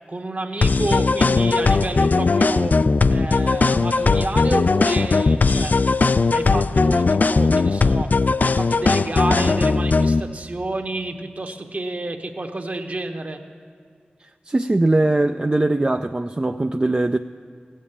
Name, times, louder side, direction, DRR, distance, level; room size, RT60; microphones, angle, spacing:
voice 1, 0.1-5.8 6.3-8.2 8.4-13.4, right 2 dB, 50° right, 4 dB, 1.2 m, -29 dB
sound 1, 0.6-10.2, left 4 dB, 55° left, 0.3 m, -18 dB
voice 2, 14.2-17.2, right 2 dB, 30° right, 7 dB, 0.4 m, -21 dB
16.5 x 7.4 x 8.6 m, 2.2 s
wide cardioid pair, 55°, 3 cm